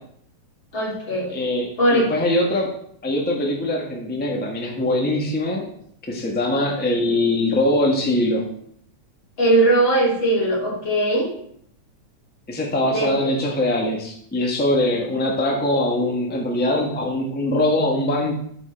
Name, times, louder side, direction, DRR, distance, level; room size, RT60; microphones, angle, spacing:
voice 1, 0.7-1.4 1.8-2.2 9.4-11.3 12.8-13.3, right 1 dB, 40° left, -5 dB, 3.6 m, -20 dB
voice 2, 1.3-2.7 3.0-5.6 6.0-8.5 12.5-18.3, left 1 dB, 5° left, 0 dB, 0.7 m, -22 dB
11.0 x 6.1 x 4.5 m, 0.67 s
omnidirectional pair, 3.5 m